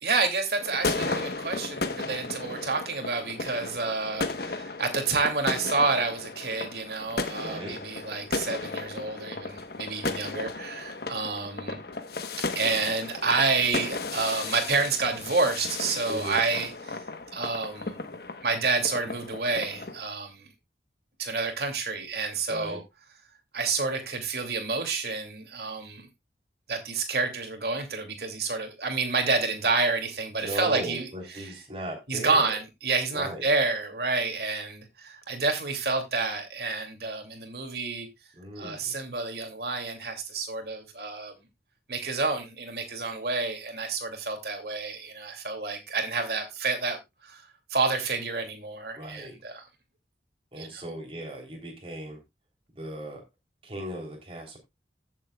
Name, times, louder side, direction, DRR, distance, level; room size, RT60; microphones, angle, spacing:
voice 1, 0.0-11.8 12.5-17.0 17.3-18.0 18.4-20.5 21.2-22.8 23.5-26.1 26.7-31.1 31.3-31.5 32.1-38.1 38.6-41.3 41.9-47.0 47.2-47.4 47.7-49.7 50.6-50.8, right 3 dB, 60° right, 2.7 m, -29 dB
sound 1, 0.6-20.0, left 3 dB, 60° left, 1.2 m, -35 dB
voice 2, 7.4-7.8 16.1-16.4 22.5-22.8 30.4-32.5 33.1-33.5 38.4-38.9 48.9-49.4 50.5-52.2 52.7-53.2 53.6-54.6, right 1 dB, 30° right, 3.5 m, -37 dB
15.5 x 7.5 x 2.4 m
head